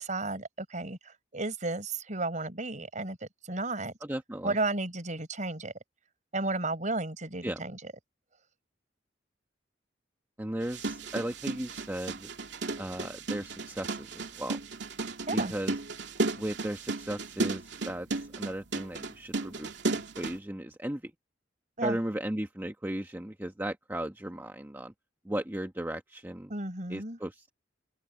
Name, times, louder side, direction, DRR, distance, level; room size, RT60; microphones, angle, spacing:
voice 1, 0.0-3.2 3.4-3.9 4.4-5.7 6.3-7.8 15.3-15.5 21.8-22.0 26.5-27.2, right 2 dB, 45° right, 4.8 m, -33 dB
voice 2, 4.0-4.6 7.4-7.6 10.4-12.3 12.8-14.6 15.3-15.8 16.3-21.1 21.8-24.9 25.2-26.5 26.9-27.5, right 1 dB, 10° right, 1.0 m, -36 dB
sound 1, 10.6-20.4, right 3 dB, 70° right, 2.8 m, -34 dB
head